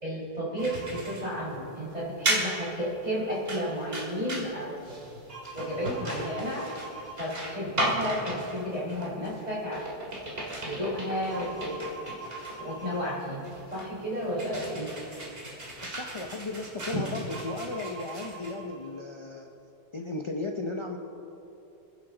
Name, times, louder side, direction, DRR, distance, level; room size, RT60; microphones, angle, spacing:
voice 1, 0.0-4.8 5.5-6.6 7.2-9.9 10.6-11.9 12.6-13.4 13.7-14.9 16.9-17.1, equal, 40° right, -5 dB, 4.6 m, -32 dB
sound 1, 0.6-19.0, right 1 dB, 65° right, 2.6 m, -36 dB
voice 2, 15.8-19.5 19.9-21.0, left 2 dB, 30° left, 1 dB, 0.8 m, -35 dB
27.0 x 10.5 x 3.9 m, 2.9 s
omnidirectional pair, 1.1 m